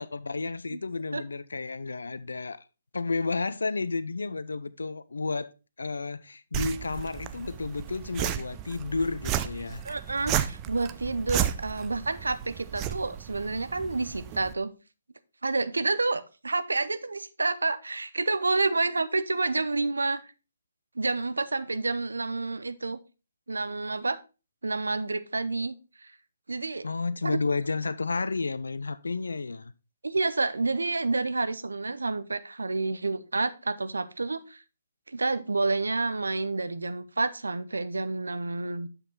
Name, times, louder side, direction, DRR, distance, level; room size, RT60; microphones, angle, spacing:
voice 1, 0.0-2.6 2.9-5.5 5.8-9.8 26.8-29.7, left 3 dB, 80° left, 0.5 m, -31 dB
sound 1, 6.5-14.5, right 10 dB, 25° right, 0.5 m, -33 dB
voice 2, 9.8-14.7 15.4-20.3 21.0-23.0 23.5-24.2 24.6-26.1 26.5-26.9 27.2-27.4 30.0-34.6 35.1-38.9, right 3 dB, 80° right, 0.6 m, -29 dB
7.0 x 5.8 x 3.8 m
figure-of-eight pair, 140°, 0 cm